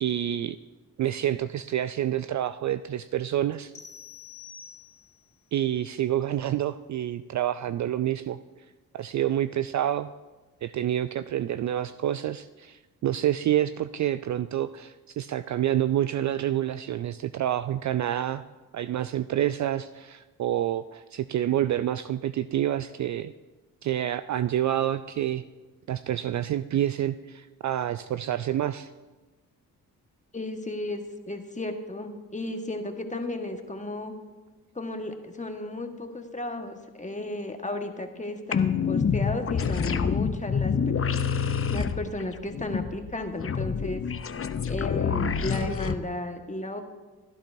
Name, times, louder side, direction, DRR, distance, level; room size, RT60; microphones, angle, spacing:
voice 1, 0.0-0.6 1.0-3.7 5.5-8.4 8.9-10.1 10.6-18.4 18.7-23.3 23.8-25.4 25.9-28.9, right 11 dB, 45° right, 13 dB, 0.4 m, -28 dB
sound 1, 3.7-5.3, left 7 dB, 60° left, 2.9 m, -46 dB
voice 2, 30.3-34.1 34.7-40.7 41.7-44.0 44.7-46.8, left 2 dB, 15° left, 5 dB, 1.5 m, -34 dB
sound 2, 38.5-45.9, left 6 dB, 30° left, 0.7 m, -27 dB
16.0 x 11.5 x 2.7 m, 1.2 s
hypercardioid pair, 45°, 43 cm